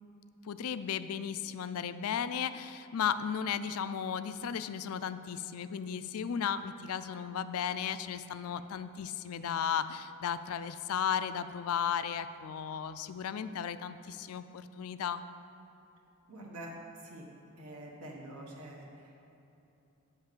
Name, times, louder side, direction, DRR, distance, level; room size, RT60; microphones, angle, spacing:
voice 1, 0.4-15.2, left 8 dB, 75° left, 13 dB, 0.4 m, -35 dB
voice 2, 16.3-17.3 17.6-19.4, right 1 dB, 85° right, -2 dB, 1.3 m, -46 dB
8.1 x 5.7 x 6.8 m, 2.9 s
head